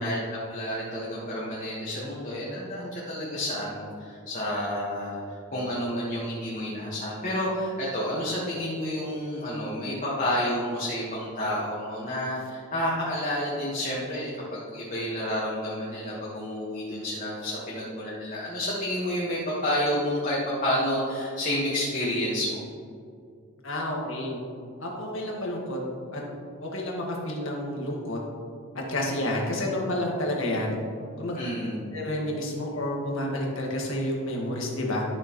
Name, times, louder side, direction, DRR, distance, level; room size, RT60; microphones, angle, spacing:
voice 1, 0.0-22.6 31.3-31.8, equal, 40° left, -7 dB, 1.6 m, -30 dB
voice 2, 23.6-24.4 24.8-25.8 26.1-26.2 26.6-28.2 28.9-30.8 31.2-31.4 31.9-35.1, left 1 dB, 70° left, -1 dB, 1.8 m, -30 dB
12.0 x 6.6 x 3.1 m, 2.4 s
head